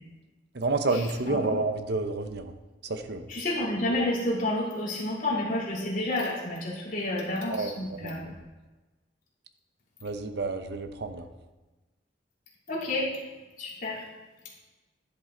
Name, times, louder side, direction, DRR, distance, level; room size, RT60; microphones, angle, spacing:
voice 1, 0.5-2.5 2.8-3.3 7.5-8.3 10.0-11.3, right 3 dB, 60° right, 8 dB, 0.8 m, -30 dB
voice 2, 3.3-8.3 12.7-13.1 13.6-14.0, left 1 dB, 45° left, -6 dB, 3.2 m, -30 dB
11.5 x 7.5 x 3.9 m, 1.2 s
head